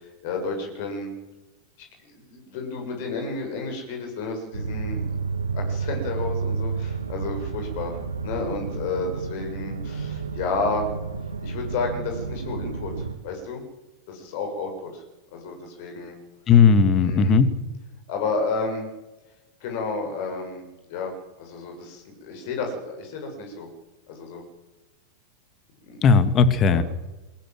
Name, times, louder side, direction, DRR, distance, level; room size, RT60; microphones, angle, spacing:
voice 1, 0.2-1.2 2.0-5.0 5.5-10.9 11.4-13.6 14.1-15.0 15.3-16.2 17.0-17.4 18.1-18.9 19.6-21.1 21.4-23.7 24.1-24.4 25.9-26.0 26.7-26.8, left 3 dB, 50° left, 3 dB, 7.8 m, -31 dB
sound 1, 4.5-13.1, right 5 dB, 75° right, 3.0 m, -31 dB
voice 2, 16.5-17.5 26.0-26.8, left 5 dB, 30° left, 12 dB, 2.4 m, -16 dB
23.5 x 17.5 x 8.1 m, 1.1 s
figure-of-eight pair, 90°, 0 cm